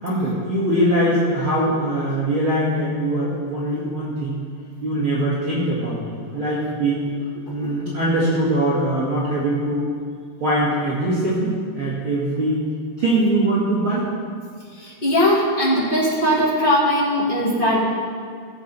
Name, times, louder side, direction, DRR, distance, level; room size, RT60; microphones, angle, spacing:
voice 1, 0.0-4.4 4.8-7.1 7.5-9.9 10.4-12.6 13.0-14.1, right 1 dB, 40° right, -9 dB, 2.5 m, -22 dB
voice 2, 14.8-17.8, equal, 20° left, -7 dB, 1.6 m, -19 dB
17.0 x 7.6 x 4.3 m, 2.2 s
omnidirectional pair, 4.7 m